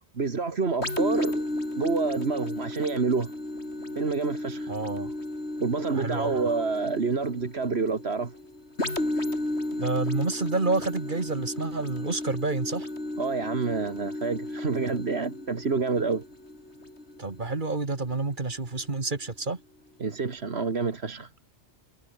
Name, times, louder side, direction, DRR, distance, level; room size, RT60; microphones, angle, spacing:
voice 1, 0.1-1.4 1.8-3.3 4.0-4.7 5.6-8.3 13.2-16.2 20.0-21.3, right 4 dB, 65° right, 2.1 m, -28 dB
sound 1, 0.8-18.3 18.9-19.0, left 1 dB, 70° left, 7.4 m, -34 dB
voice 2, 4.7-5.1 5.9-6.4 9.8-12.9 17.2-19.6, right 3 dB, 45° right, 2.2 m, -29 dB
omnidirectional pair, 1.2 m